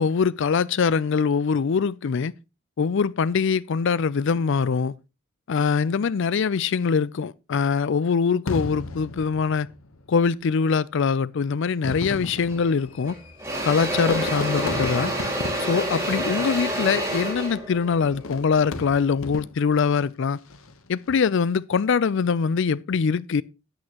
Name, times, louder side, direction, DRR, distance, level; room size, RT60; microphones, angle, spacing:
voice 1, 0.0-2.3 2.8-4.9 5.5-9.7 10.1-13.1 13.6-15.1 15.6-20.4 20.9-23.4, left 5 dB, 60° left, 0.4 m, -23 dB
Fireworks, 8.5-10.1 10.9-11.0 11.7-17.0 18.0-19.8 20.4-20.9, left 2 dB, 80° left, 1.0 m, -34 dB
Engine / Drill, 12.5-12.7 13.0-19.2, equal, 15° right, 6.6 m, -28 dB
12.5 x 8.7 x 2.9 m
head